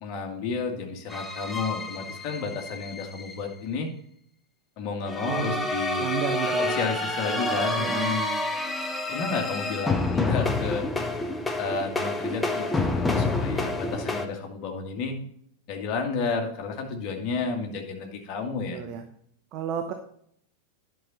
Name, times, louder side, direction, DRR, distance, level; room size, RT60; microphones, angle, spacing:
voice 1, 0.0-3.9 4.8-6.1 6.6-8.3 9.1-10.9 11.6-15.2 15.7-18.8, left 4 dB, 40° left, 2 dB, 2.0 m, -31 dB
sound 1, 1.1-3.3 5.1-14.3, left 2 dB, 10° left, 0.9 m, -28 dB
voice 2, 5.2-5.7 5.9-6.7 7.7-8.1 18.7-19.0 19.5-19.9, right 7 dB, 40° right, 6 dB, 0.9 m, -32 dB
10.5 x 6.3 x 4.1 m, 0.66 s
figure-of-eight pair, 90°, 0 cm